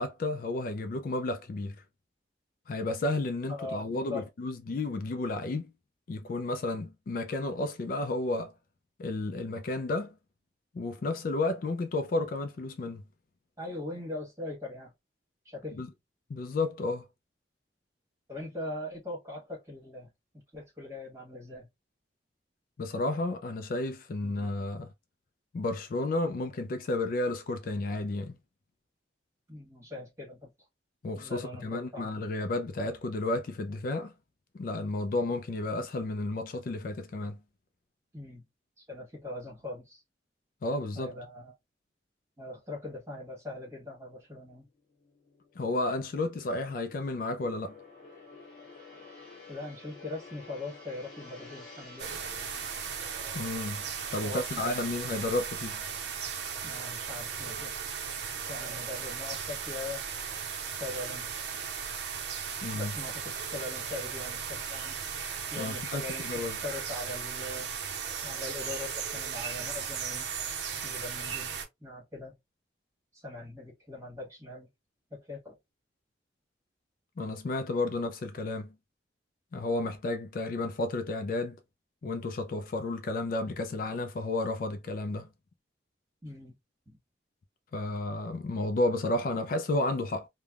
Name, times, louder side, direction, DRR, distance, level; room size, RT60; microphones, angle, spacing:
voice 1, 0.0-1.8 2.7-5.7 6.1-8.5 9.0-10.1 10.7-13.0 15.7-15.9 16.3-17.0 22.8-24.9 25.5-28.4 31.0-34.1 34.5-37.4 40.6-41.1 45.6-47.8 53.3-53.8 54.1-55.8 62.6-62.9 65.6-66.6 77.2-78.7 79.5-81.6 82.0-85.3 87.7-90.3, left 2 dB, 50° left, 0.3 m, -32 dB
voice 2, 3.5-4.3 13.6-14.9 15.4-15.8 18.3-20.1 20.5-21.7 29.5-30.5 31.1-32.1 38.1-38.4 38.8-40.0 40.9-41.5 42.4-44.6 49.5-52.2 54.2-54.9 56.6-57.9 58.5-60.0 60.7-61.3 62.7-65.0 65.5-70.3 70.8-71.5 71.8-72.4 73.1-74.7 75.1-75.6 86.2-86.5 86.9-87.0, left 2 dB, 15° right, 1.3 m, -41 dB
Gong, 44.6-57.0 57.3-57.6, left 3 dB, 5° left, 1.1 m, -53 dB
sound 1, 52.0-71.7, right 7 dB, 70° right, 0.6 m, -36 dB
3.3 x 2.1 x 2.3 m
head